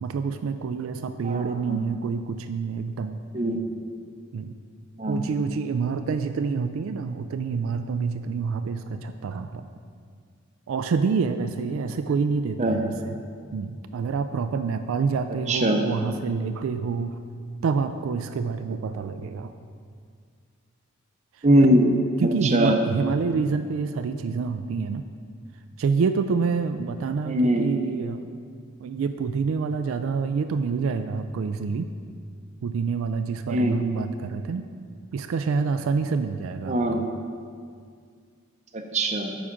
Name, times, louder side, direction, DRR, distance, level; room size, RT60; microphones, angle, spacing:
voice 1, 0.0-3.2 4.3-4.6 5.1-9.6 10.7-13.2 13.5-17.2 17.6-19.5 22.2-25.0 25.8-28.2 28.8-31.9 32.6-34.7 35.1-37.1, right 5 dB, 80° right, 9 dB, 0.3 m, -27 dB
voice 2, 1.2-1.8 3.3-3.6 5.0-5.2 12.6-12.8 15.5-15.8 21.4-21.9 22.2-22.8 27.3-27.7 33.5-33.8 36.7-37.0 38.7-39.3, right 1 dB, 35° right, 3 dB, 0.6 m, -21 dB
7.2 x 4.9 x 5.8 m, 2.1 s
head